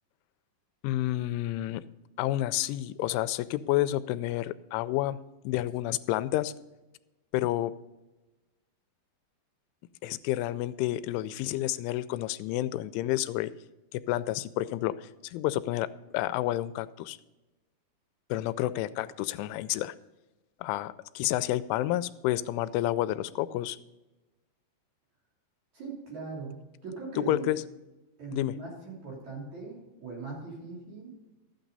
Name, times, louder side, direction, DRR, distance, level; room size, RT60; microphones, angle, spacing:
voice 1, 0.8-1.8 2.2-5.2 5.4-6.5 7.3-7.7 10.0-13.5 13.9-17.2 18.3-20.0 20.6-23.8 27.2-27.6 28.3-28.5, left 15 dB, 90° left, 14 dB, 3.0 m, -30 dB
voice 2, 25.7-27.5 28.2-31.1, right 4 dB, 40° right, -3 dB, 3.9 m, -40 dB
13.0 x 8.9 x 4.0 m, 1.1 s
omnidirectional pair, 5.4 m